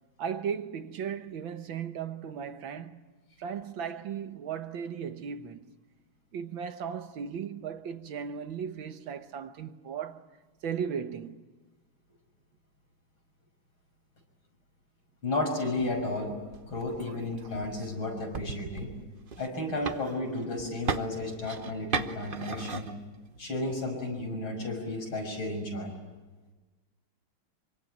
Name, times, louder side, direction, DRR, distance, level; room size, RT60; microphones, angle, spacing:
voice 1, 0.2-3.1 3.4-5.7 6.3-10.4 10.6-11.5, right 7 dB, 75° right, 1.9 m, -36 dB
voice 2, 15.2-16.3 16.7-18.9 19.4-22.9 23.4-25.9, left 2 dB, 75° left, 6.9 m, -33 dB
sound 1, 15.7-23.6, right 5 dB, 40° right, 0.8 m, -39 dB
25.5 x 25.0 x 9.1 m
omnidirectional pair, 2.2 m